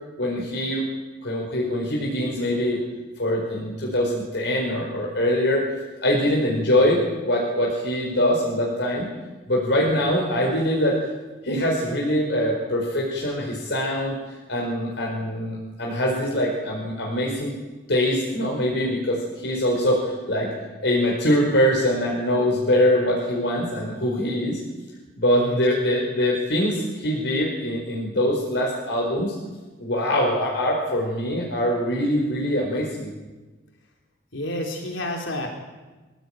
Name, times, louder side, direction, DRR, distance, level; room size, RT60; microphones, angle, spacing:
voice 1, 0.2-0.8 1.2-2.8 3.2-5.7 6.0-9.1 9.5-11.0 11.4-17.5 17.9-20.5 20.8-24.6 25.2-29.3 29.8-33.1, left 1 dB, 65° left, -2 dB, 4.9 m, -23 dB
voice 2, 25.3-25.6 34.3-35.5, left 1 dB, 85° left, 2 dB, 3.5 m, -30 dB
25.0 x 17.0 x 9.1 m, 1.2 s
head